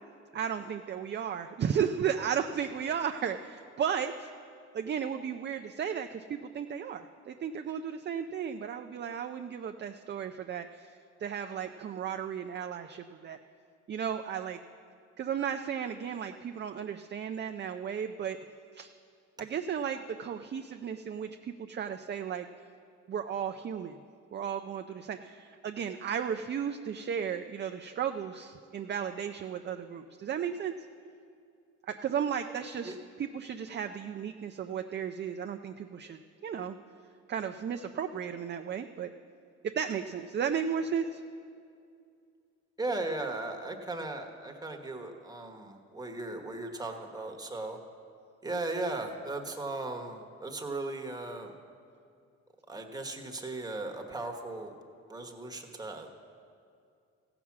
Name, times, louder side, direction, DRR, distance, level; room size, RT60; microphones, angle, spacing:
voice 1, 0.3-4.3 4.7-10.9 11.2-13.4 13.9-14.6 15.2-18.4 18.7-18.9 19.4-22.5 23.1-24.0 24.3-30.7 31.9-36.8 37.3-39.1 39.6-41.2, right 8 dB, 35° right, 6 dB, 0.4 m, -34 dB
voice 2, 42.8-47.8 48.4-51.5 52.7-54.7 55.1-56.1, right 2 dB, 15° right, 3 dB, 1.3 m, -37 dB
15.5 x 6.0 x 7.4 m, 2.4 s
cardioid pair, 90°, 30 cm